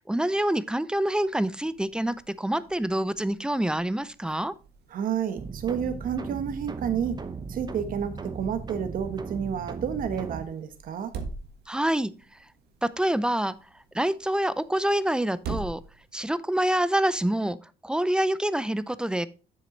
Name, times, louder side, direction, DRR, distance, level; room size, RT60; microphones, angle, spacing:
voice 1, 0.1-4.5 11.7-12.1 12.8-13.6 13.9-15.8 16.1-17.6 17.8-19.3, right 1 dB, 5° right, 0.4 m, -26 dB
sound 1, 1.2-16.4, right 4 dB, 75° right, 1.5 m, -45 dB
voice 2, 4.9-7.2 7.5-11.1, right 8 dB, 55° right, 1.1 m, -30 dB
sound 2, 5.4-10.4, right 4 dB, 25° right, 0.8 m, -37 dB
7.4 x 6.4 x 3.9 m
cardioid pair, 110°, 17 cm